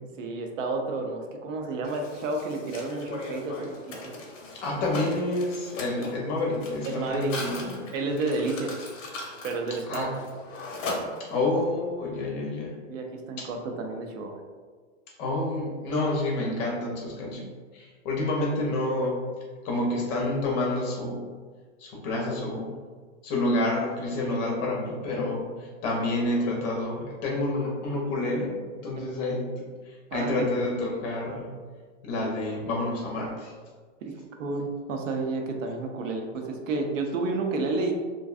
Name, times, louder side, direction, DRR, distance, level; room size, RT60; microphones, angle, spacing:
voice 1, 0.2-4.1 6.8-7.3 7.9-8.9 9.4-10.1 12.9-14.4 29.0-29.1 30.1-30.5 34.0-37.9, right 3 dB, 85° right, 3 dB, 0.6 m, -31 dB
Mechanisms, 1.8-11.6, left 2 dB, 85° left, 0.8 m, -39 dB
voice 2, 4.6-7.9 9.9-10.1 11.3-12.8 13.4-13.5 15.2-17.5 17.7-19.2 19.6-21.2 21.8-22.7 23.2-31.5 32.0-33.5, left 2 dB, 35° left, -2 dB, 0.5 m, -29 dB
2.5 x 2.2 x 2.4 m, 1.5 s
hypercardioid pair, 145°, 38 cm